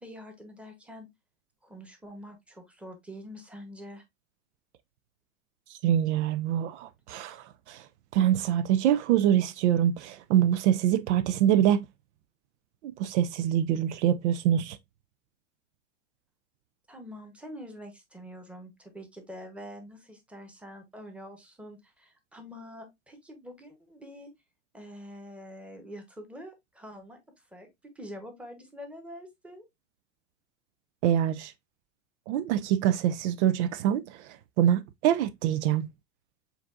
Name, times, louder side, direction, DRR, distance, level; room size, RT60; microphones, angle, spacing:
voice 1, 0.0-1.1 1.6-4.0 16.9-24.3 24.7-27.2 27.5-27.7 27.9-29.6, equal, 5° right, 1.0 m, -45 dB
voice 2, 5.8-7.8 8.1-11.8 12.8-14.8 31.0-31.5 32.3-34.2 34.6-35.9, right 11 dB, 70° right, 0.5 m, -25 dB
7.1 x 2.6 x 2.4 m
supercardioid pair, 125°, 36 cm